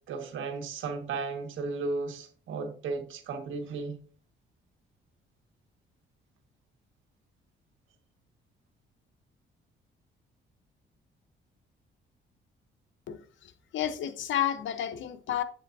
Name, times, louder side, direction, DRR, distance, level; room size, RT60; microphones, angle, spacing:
voice 1, 0.1-4.0, right 4 dB, 80° right, 1.9 m, -35 dB
voice 2, 13.1-15.4, left 10 dB, 75° left, 1.0 m, -31 dB
8.4 x 7.3 x 2.8 m
cardioid pair, 90°, 20 cm